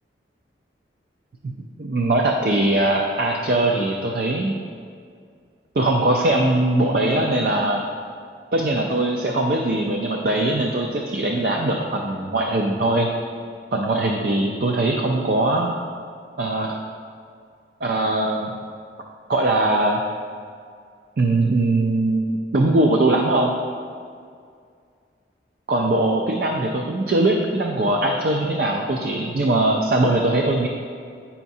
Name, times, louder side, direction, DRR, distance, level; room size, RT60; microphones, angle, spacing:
voice 1, 1.8-4.5 5.8-7.8 8.5-13.1 13.7-15.7 16.4-16.8 17.8-18.5 19.3-20.0 21.2-23.5 25.7-30.7, right 2 dB, 55° right, 1 dB, 0.4 m, -21 dB
8.3 x 5.7 x 2.7 m, 2.2 s
head